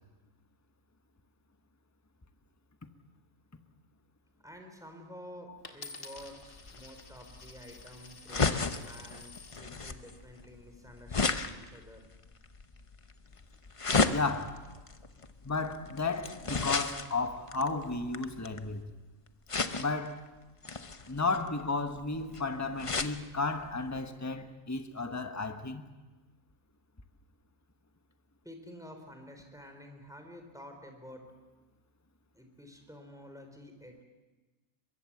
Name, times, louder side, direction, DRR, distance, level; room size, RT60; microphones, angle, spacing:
voice 1, 4.4-12.0 28.4-31.3 32.3-34.0, equal, ahead, 3.7 m, -50 dB
Coin (dropping), 5.6-9.7 10.4-10.8, left 4 dB, 75° left, 2.4 m, -50 dB
sound 1, 6.2-18.8 19.5-20.1 20.6-23.2 23.6-23.7 24.0-24.1, left 4 dB, 30° left, 0.8 m, -34 dB
voice 2, 14.1-14.6 15.4-18.9 19.7-20.2 21.1-25.8, left 3 dB, 15° left, 1.1 m, -33 dB
23.5 x 22.5 x 7.3 m
omnidirectional pair, 1.3 m